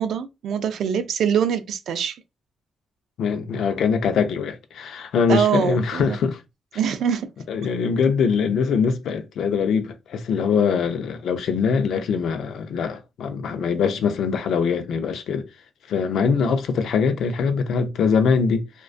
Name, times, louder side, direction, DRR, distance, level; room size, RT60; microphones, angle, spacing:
voice 1, 0.0-2.2 5.3-6.2 6.8-7.3, right 8 dB, 75° right, 0.3 m, -23 dB
voice 2, 3.2-6.4 7.5-15.5 15.9-18.7, left 6 dB, 75° left, 0.4 m, -22 dB
2.4 x 2.2 x 2.4 m
wide cardioid pair, 150°, 0 cm